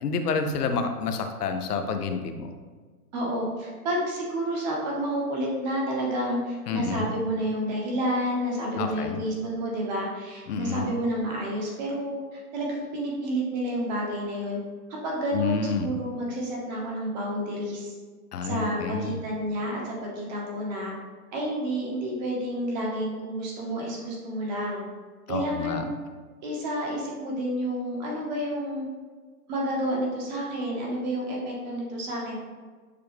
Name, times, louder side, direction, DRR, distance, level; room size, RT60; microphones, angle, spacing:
voice 1, 0.0-2.5 6.7-7.1 8.8-9.2 10.5-10.9 15.3-15.9 18.3-19.2 25.3-25.8, left 5 dB, 75° left, 6 dB, 0.7 m, -29 dB
voice 2, 3.1-14.6 15.0-17.9 18.4-20.9 21.3-24.8 25.3-25.9 26.4-28.9 29.5-32.4, equal, 30° right, -2 dB, 0.9 m, -30 dB
6.7 x 2.3 x 3.3 m, 1.4 s
hypercardioid pair, 155°, 47 cm